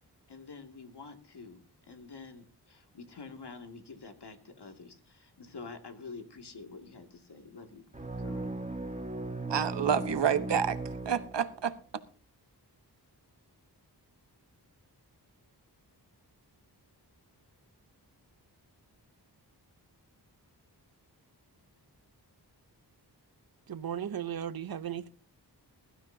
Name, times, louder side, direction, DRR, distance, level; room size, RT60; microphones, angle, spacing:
voice 1, 0.3-7.8 8.2-8.5, left 4 dB, 70° left, 2.4 m, -48 dB
sound 1, 7.9-11.8, right 2 dB, 15° right, 1.7 m, -37 dB
voice 2, 9.5-10.8 11.0-11.8, right 7 dB, 85° right, 1.2 m, -28 dB
voice 3, 23.7-25.1, right 9 dB, 60° right, 0.8 m, -36 dB
21.0 x 12.5 x 2.8 m
wide cardioid pair, 95°, 41 cm